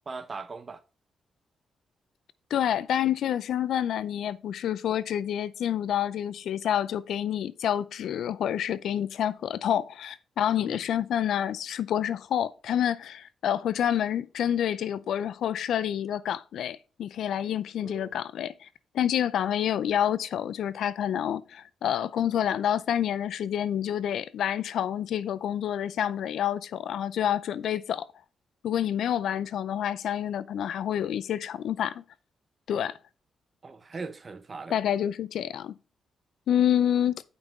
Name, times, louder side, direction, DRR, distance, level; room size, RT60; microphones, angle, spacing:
voice 1, 0.1-0.8 10.6-10.8 17.8-18.1 33.6-34.8, right 4 dB, 35° right, 0.8 m, -40 dB
voice 2, 2.5-18.7 18.9-28.0 28.6-32.0 32.7-33.0 34.7-35.7 36.5-37.2, left 10 dB, 80° left, 0.5 m, -28 dB
10.5 x 5.4 x 3.2 m
cardioid pair, 105°, 0 cm